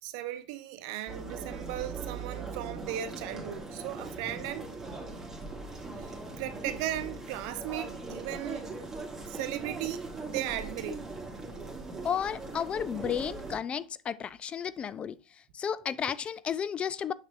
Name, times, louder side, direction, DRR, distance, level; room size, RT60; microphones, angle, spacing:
voice 1, 0.0-4.7 6.0-8.7 9.3-11.1, right 13 dB, 60° right, 0.9 m, -37 dB
sound 1, 1.1-13.6, right 3 dB, 10° right, 2.3 m, -40 dB
voice 2, 12.0-15.2 15.5-17.1, left 8 dB, 30° left, 0.4 m, -33 dB
6.6 x 6.3 x 2.6 m
hypercardioid pair, 90°, 4 cm